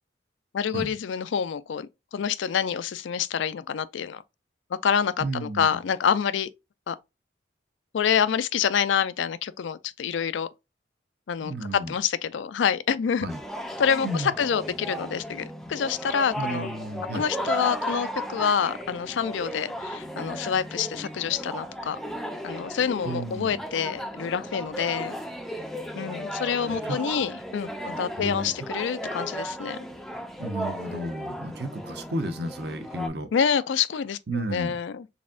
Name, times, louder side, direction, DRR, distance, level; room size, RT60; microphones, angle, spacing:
voice 1, 0.5-4.2 4.8-6.5 6.9-7.0 7.9-10.5 11.3-13.3 13.8-16.7 17.1-22.0 22.4-25.1 25.9-29.8 33.3-35.1, left 7 dB, 75° left, 0.4 m, -27 dB
voice 2, 5.2-5.8 11.4-11.9 13.2-13.4 14.0-14.3 16.4-17.2 23.0-23.5 26.7-27.0 27.8-28.5 30.4-33.3 34.3-34.7, right 1 dB, 55° right, 0.8 m, -33 dB
sound 1, 13.3-33.1, equal, ahead, 0.4 m, -35 dB
4.1 x 3.6 x 2.4 m
head